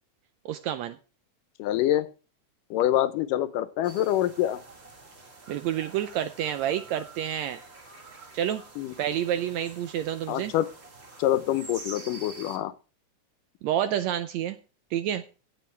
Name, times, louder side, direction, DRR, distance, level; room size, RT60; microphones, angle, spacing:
voice 1, 0.4-1.0 5.5-7.6 8.3-8.6 9.0-10.5 13.6-14.6 14.9-15.2, right 10 dB, 80° right, 1.6 m, -29 dB
voice 2, 1.6-2.1 2.7-4.6 8.8-8.9 10.3-10.7 11.2-12.7, left 13 dB, 90° left, 2.4 m, -25 dB
sound 1, 3.8-12.6, right 3 dB, 35° right, 1.0 m, -47 dB
16.5 x 7.0 x 3.2 m
omnidirectional pair, 3.7 m